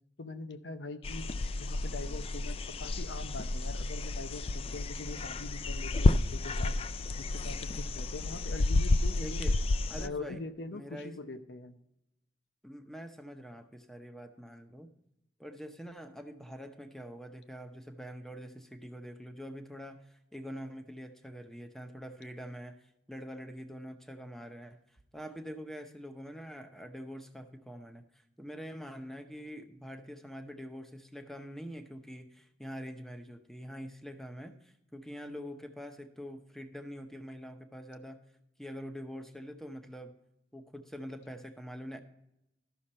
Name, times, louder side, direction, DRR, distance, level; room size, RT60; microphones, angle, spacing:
voice 1, 0.2-1.3 1.6-6.7 7.2-9.5 10.0-11.8, left 3 dB, 90° left, 10 dB, 0.8 m, -43 dB
sound 1, 1.0-10.1, left 2 dB, 30° left, 0.3 m, -31 dB
voice 2, 9.2-9.6 9.9-10.4 10.7-11.2 12.6-14.9 15.4-22.8 23.1-24.8 25.1-38.2 38.6-40.2 40.5-42.0, equal, ahead, 6 dB, 0.8 m, -45 dB
13.0 x 6.4 x 4.3 m, 0.85 s
head